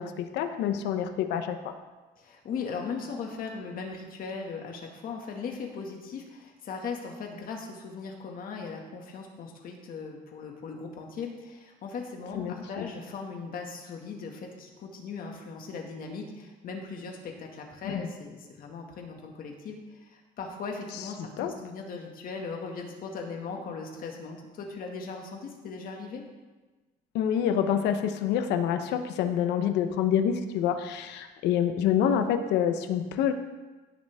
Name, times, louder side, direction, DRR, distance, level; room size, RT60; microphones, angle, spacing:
voice 1, 0.0-1.7 12.3-12.9 17.8-18.0 21.4-21.5 27.1-33.3, left 9 dB, 90° left, 8 dB, 0.9 m, -27 dB
voice 2, 2.2-26.3, left 5 dB, 60° left, 2 dB, 2.0 m, -38 dB
16.5 x 6.8 x 3.6 m, 1.2 s
cardioid pair, 110°, 17 cm